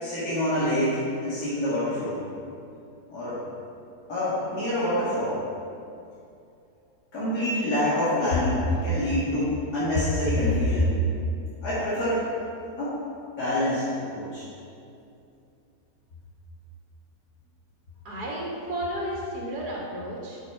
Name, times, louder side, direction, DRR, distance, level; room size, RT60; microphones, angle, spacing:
voice 1, 0.0-2.2 3.1-3.4 4.1-5.4 7.1-11.0 11.6-12.2 12.8-13.0 13.4-14.4, left 1 dB, 85° left, -11 dB, 2.4 m, -26 dB
voice 2, 18.1-20.4, equal, 90° right, -4 dB, 2.0 m, -32 dB
8.6 x 6.2 x 4.5 m, 2.6 s
omnidirectional pair, 1.6 m